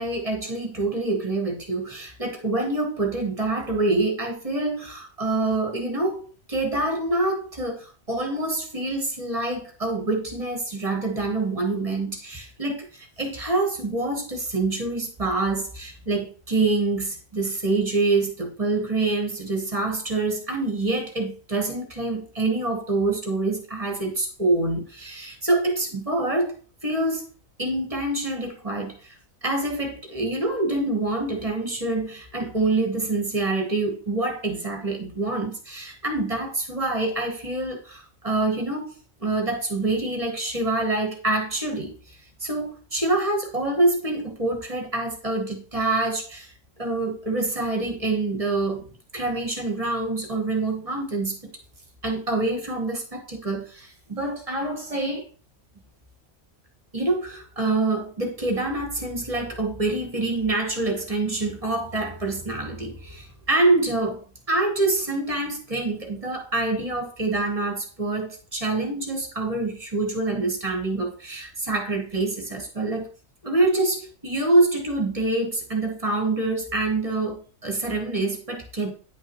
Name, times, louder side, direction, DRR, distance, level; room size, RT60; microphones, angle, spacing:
voice 1, 0.0-26.5 26.8-27.3 27.6-38.9 39.2-46.5 46.8-48.9 49.1-51.4 52.0-55.3 56.9-64.2 64.5-73.1 73.4-78.9, right 2 dB, 25° right, 1.3 m, -26 dB
9.6 x 5.6 x 3.0 m
omnidirectional pair, 1.4 m